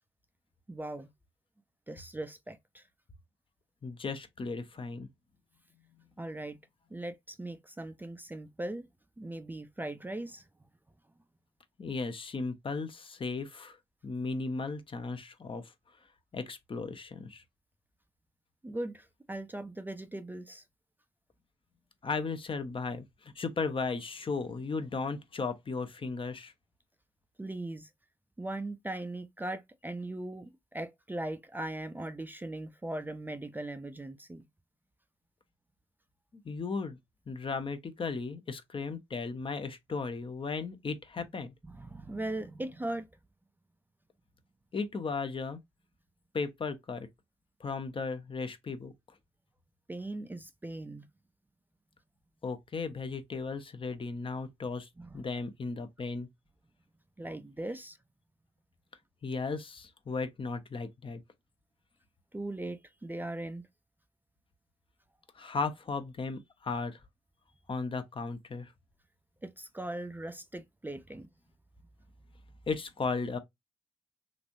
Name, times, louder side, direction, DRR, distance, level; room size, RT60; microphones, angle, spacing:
voice 1, 0.7-1.1 1.9-2.8 6.2-6.6 6.9-8.9 9.2-10.4 18.6-20.6 27.4-27.9 28.4-34.5 41.6-43.1 49.9-51.1 55.0-55.2 57.2-58.0 62.3-63.6 69.4-71.3, right 1 dB, 15° right, 0.5 m, -39 dB
voice 2, 3.8-5.1 11.8-13.8 14.0-15.7 16.3-17.4 22.0-26.5 36.4-37.0 37.3-41.5 44.7-45.6 46.3-47.1 47.6-48.9 52.4-56.3 59.2-61.2 65.3-67.0 67.7-68.7 72.7-73.4, left 4 dB, 40° left, 0.8 m, -36 dB
3.1 x 2.5 x 2.5 m
hypercardioid pair, 40°, 14 cm